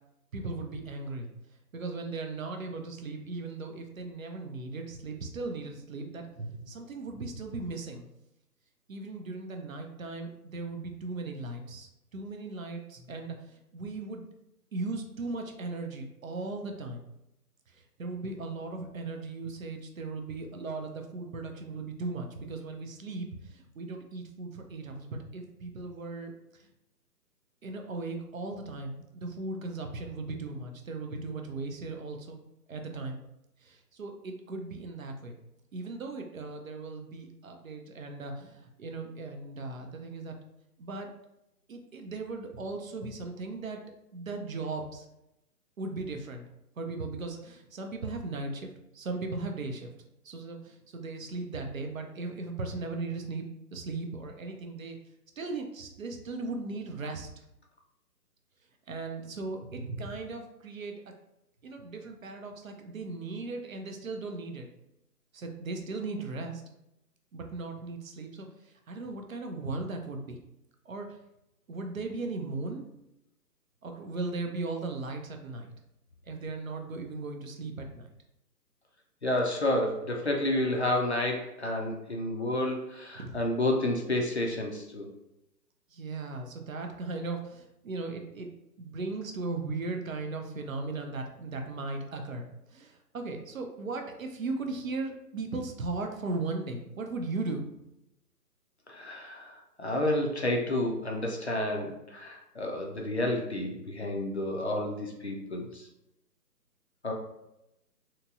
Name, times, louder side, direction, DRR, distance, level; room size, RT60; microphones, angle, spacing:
voice 1, 0.3-1.3 1.7-8.1 8.9-13.4 13.7-14.3 14.7-17.0 18.0-26.3 27.6-32.4 32.7-33.2 33.6-35.3 35.7-40.4 40.8-41.1 41.7-43.8 44.1-45.1 45.8-46.4 46.8-48.7 48.9-49.9 50.2-53.4 53.7-55.0 55.4-57.3 58.9-61.0 61.6-64.7 65.3-66.6 67.3-68.5 68.9-70.4 70.9-71.2 71.7-72.9 73.8-75.7 76.3-78.1 83.1-83.3 85.9-88.5 88.8-97.6, right 3 dB, 55° right, 4 dB, 0.6 m, -37 dB
voice 2, 79.2-85.1 98.9-105.9 107.0-107.1, left 1 dB, 45° left, 1 dB, 0.4 m, -30 dB
2.9 x 2.8 x 2.4 m, 0.87 s
figure-of-eight pair, 145°, 48 cm